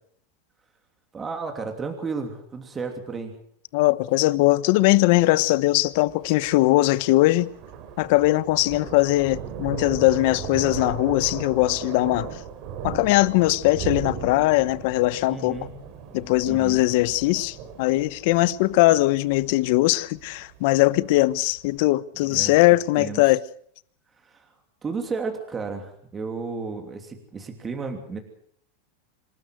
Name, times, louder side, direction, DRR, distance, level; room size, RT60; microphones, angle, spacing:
voice 1, 1.1-3.3 15.3-15.8 16.5-16.8 22.2-22.6 22.9-23.2 24.2-24.5 24.8-28.2, right 4 dB, 20° right, 3.0 m, -33 dB
voice 2, 3.7-7.5 8.0-12.4 12.8-15.7 16.1-23.4, left 19 dB, 60° left, 0.9 m, -20 dB
Thunder, 4.9-21.8, right 7 dB, 45° right, 3.4 m, -37 dB
26.5 x 13.0 x 7.9 m
supercardioid pair, 145°, 0 cm